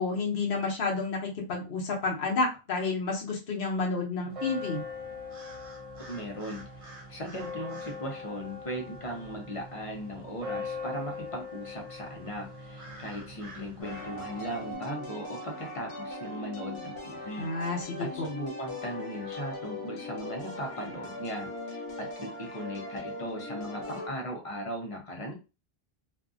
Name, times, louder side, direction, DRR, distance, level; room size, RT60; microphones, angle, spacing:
voice 1, 0.0-4.8 17.4-18.3, left 3 dB, 65° left, -1 dB, 0.9 m, -30 dB
sound 1, 4.3-14.8, left 3 dB, 40° right, 0.7 m, -41 dB
voice 2, 6.1-25.3, equal, 35° left, 1 dB, 0.8 m, -38 dB
sound 2, 13.8-24.1, left 2 dB, 85° left, 1.1 m, -40 dB
2.7 x 2.5 x 2.4 m, 0.31 s
omnidirectional pair, 1.0 m